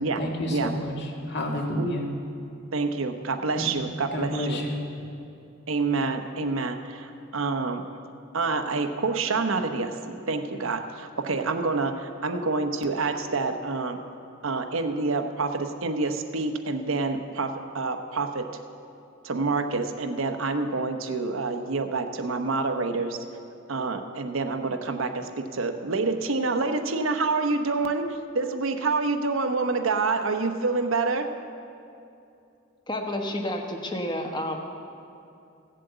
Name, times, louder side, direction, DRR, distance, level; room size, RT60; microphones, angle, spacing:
voice 1, 0.2-2.0 3.6-4.8, left 1 dB, 55° left, 0 dB, 1.9 m, -30 dB
voice 2, 2.7-4.6 5.7-7.9 8.3-14.0 14.4-18.5 19.2-23.2 23.7-31.3, right 3 dB, 85° right, 7 dB, 0.9 m, -27 dB
voice 3, 32.9-34.6, left 1 dB, 20° left, 3 dB, 1.1 m, -30 dB
15.0 x 7.7 x 7.9 m, 2.6 s
head